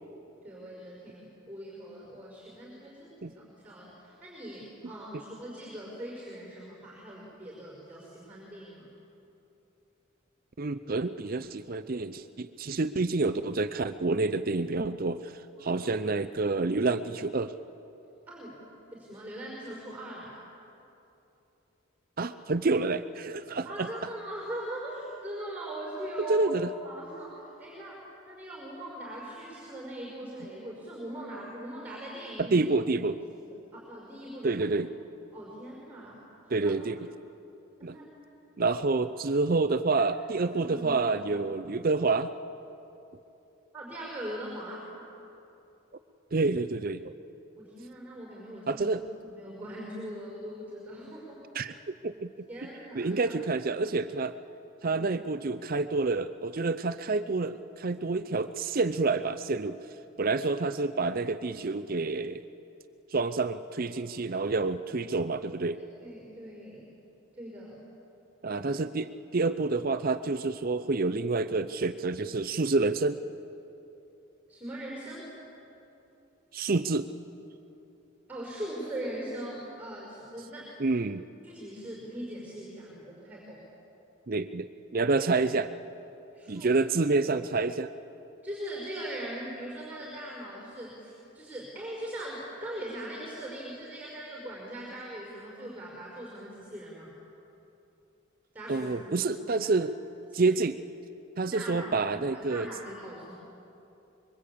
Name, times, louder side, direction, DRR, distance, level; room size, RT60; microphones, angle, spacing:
voice 1, 0.4-8.9 15.6-15.9 18.3-18.6 18.9-20.3 23.6-26.4 26.8-32.6 33.4-34.6 35.3-36.7 37.8-38.1 40.6-41.1 43.7-44.9 47.6-48.9 49.3-51.4 52.5-53.4 54.8-55.1 66.0-66.9 67.3-67.8 68.5-68.6 74.5-75.3 78.3-80.7 81.4-83.6 86.3-86.7 88.4-97.1 98.5-99.7 100.3-100.5 101.5-101.9 102.2-103.3, right 1 dB, 10° right, -3 dB, 5.3 m, -41 dB
voice 2, 10.6-15.3 15.6-17.5 22.2-23.9 26.3-26.7 32.4-33.2 34.4-34.9 36.5-37.1 37.8-38.0 38.6-42.3 46.3-47.0 48.7-49.0 51.5-52.3 53.0-54.4 54.8-59.8 60.2-62.4 63.1-65.8 68.4-73.2 76.5-77.1 80.8-81.2 84.3-85.7 86.5-87.9 98.7-99.9 100.3-100.8 101.4-102.7, right 3 dB, 45° right, 10 dB, 0.6 m, -28 dB
25.5 x 23.5 x 8.6 m, 2.9 s
head